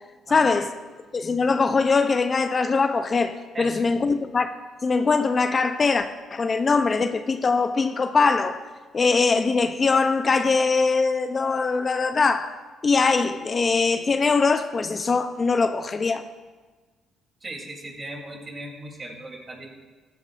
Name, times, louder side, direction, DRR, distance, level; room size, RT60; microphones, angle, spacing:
voice 1, 0.3-0.7 1.1-4.5 4.8-8.6 8.9-12.5 12.8-16.2, left 4 dB, 40° left, 0.7 m, -22 dB
voice 2, 3.5-3.8 17.4-19.7, right 1 dB, 35° right, 3.3 m, -37 dB
15.0 x 12.0 x 2.6 m
supercardioid pair, 65°, 0 cm